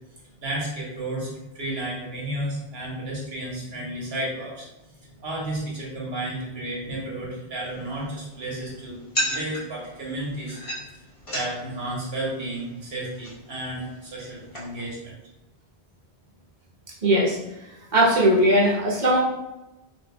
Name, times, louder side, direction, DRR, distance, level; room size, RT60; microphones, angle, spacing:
voice 1, 0.4-4.6 5.2-10.6 11.3-15.2, right 1 dB, 70° right, -4 dB, 1.4 m, -32 dB
sound 1, 7.6-14.9, equal, 30° left, 1.0 m, -36 dB
voice 2, 17.0-17.4 17.9-19.2, right 1 dB, 45° right, -4 dB, 1.0 m, -19 dB
4.5 x 2.5 x 2.2 m, 0.97 s
omnidirectional pair, 1.1 m